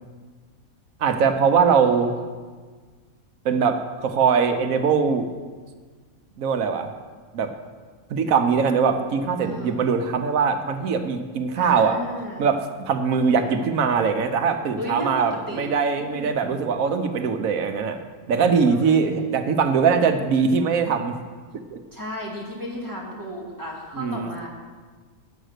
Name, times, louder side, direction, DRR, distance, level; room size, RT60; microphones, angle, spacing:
voice 1, 1.0-2.1 3.4-5.3 6.4-6.9 7.3-7.5 8.1-12.0 12.4-18.0 18.3-21.2 21.7-21.8 23.9-24.3, right 6 dB, 75° right, 7 dB, 1.2 m, -21 dB
voice 2, 9.4-9.8 11.5-12.5 13.1-13.5 14.8-15.7 16.0-16.3 18.3-19.3 21.9-24.5, equal, 15° right, -2 dB, 2.0 m, -35 dB
9.0 x 7.3 x 6.5 m, 1.5 s
omnidirectional pair, 1.5 m